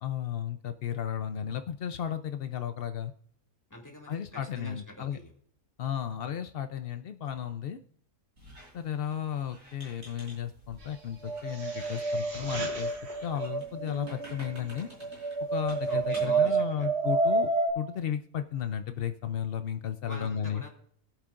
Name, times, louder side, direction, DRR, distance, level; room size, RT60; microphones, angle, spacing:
voice 1, 0.0-3.1 4.1-5.2 5.8-7.8 8.7-12.9 13.2-14.9 15.5-17.5 17.7-20.6, left 9 dB, 75° left, 9 dB, 0.5 m, -34 dB
voice 2, 3.7-4.3 4.5-5.3 15.9-16.9 20.1-20.7, left 1 dB, 10° left, -1 dB, 2.3 m, -45 dB
Squeak, 8.4-16.5, equal, 55° right, 5.2 m, -52 dB
sound 1, 11.2-17.7, right 3 dB, 75° right, 2.4 m, -29 dB
21.5 x 8.3 x 2.5 m, 0.62 s
omnidirectional pair, 1.7 m